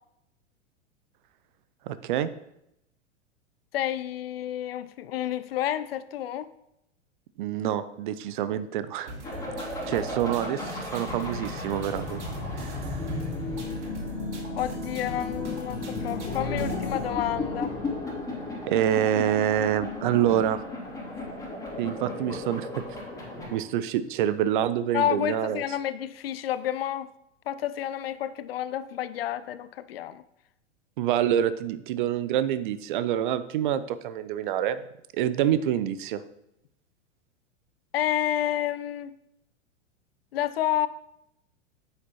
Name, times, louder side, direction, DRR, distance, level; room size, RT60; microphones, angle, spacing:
voice 1, 1.9-2.3 7.4-9.1 9.9-12.2 12.6-12.8 18.7-20.6 21.8-22.8 23.5-25.6 31.0-34.8 35.1-36.2, right 10 dB, 40° right, 13 dB, 0.6 m, -26 dB
voice 2, 3.7-6.5 14.6-17.8 24.9-27.1 27.5-30.2 37.9-39.2 40.3-40.9, left 11 dB, 50° left, 15 dB, 0.5 m, -30 dB
sound 1, 9.1-17.1, right 1 dB, 65° right, 2.3 m, -41 dB
sound 2, 9.2-23.6, left 2 dB, 10° left, 2.7 m, -34 dB
9.3 x 8.6 x 3.0 m, 0.82 s
figure-of-eight pair, 95°, 37 cm